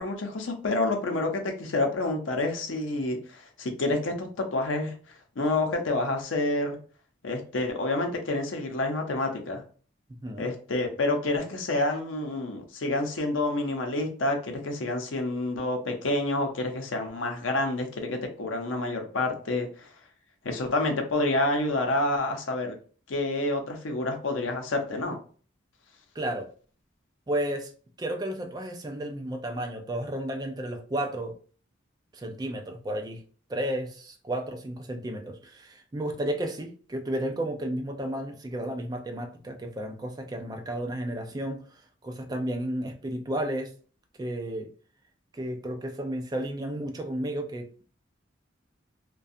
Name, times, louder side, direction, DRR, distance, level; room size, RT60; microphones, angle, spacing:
voice 1, 0.0-4.9 5.4-6.8 7.2-9.6 10.4-19.9 20.4-22.7 23.1-25.2, left 2 dB, 85° left, 4 dB, 0.6 m, -28 dB
voice 2, 26.2-26.5 27.3-27.7 28.0-31.4 32.1-33.2 33.5-43.7 44.2-44.7 45.3-47.9, right 1 dB, 20° right, 4 dB, 0.3 m, -32 dB
2.4 x 2.2 x 2.6 m, 0.42 s
head